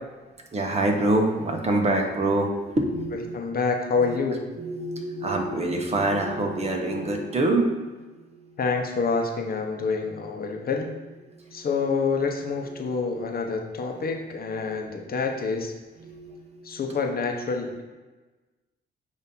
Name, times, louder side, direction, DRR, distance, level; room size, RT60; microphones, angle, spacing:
voice 1, 0.5-3.4 4.0-8.6 10.5-10.7 11.2-11.7 12.6-13.0 13.9-14.1 14.5-14.8 16.0-17.0, right 2 dB, 30° right, 2 dB, 1.1 m, -27 dB
voice 2, 3.3-4.4 8.6-10.9 11.5-15.7 16.6-17.8, left 4 dB, 50° left, 3 dB, 1.0 m, -27 dB
8.2 x 2.8 x 5.5 m, 1.2 s
cardioid pair, 90°, 20 cm